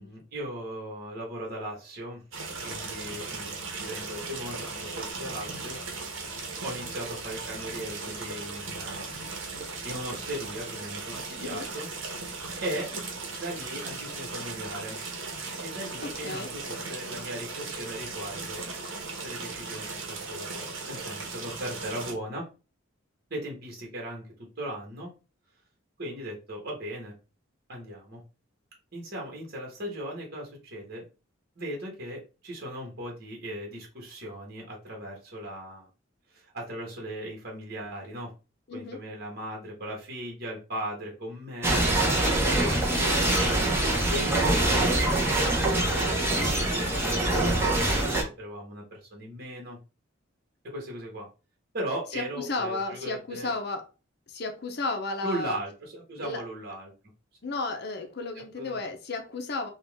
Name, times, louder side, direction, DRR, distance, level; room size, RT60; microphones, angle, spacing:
voice 1, 0.0-2.2 2.6-5.8 6.6-9.2 9.8-11.9 12.6-12.9 13.4-15.0 15.6-18.6 19.2-22.4 23.3-24.2 24.6-25.1 26.0-27.1 27.7-28.2 28.9-31.0 31.5-35.9 36.3-38.3 38.7-41.8 42.2-49.8 50.7-51.3 51.7-53.5 55.2-56.9 58.6-58.8, right 1 dB, 50° right, 1.4 m, -38 dB
sound 1, 2.3-22.1, right 3 dB, 75° right, 1.0 m, -37 dB
voice 2, 16.0-16.5 38.7-39.0 42.9-43.1 52.1-53.8 54.3-55.6 56.2-56.4 57.4-59.7, left 3 dB, 55° left, 0.7 m, -33 dB
sound 2, 41.6-48.2, right 1 dB, 10° right, 1.0 m, -24 dB
4.3 x 2.4 x 3.5 m
head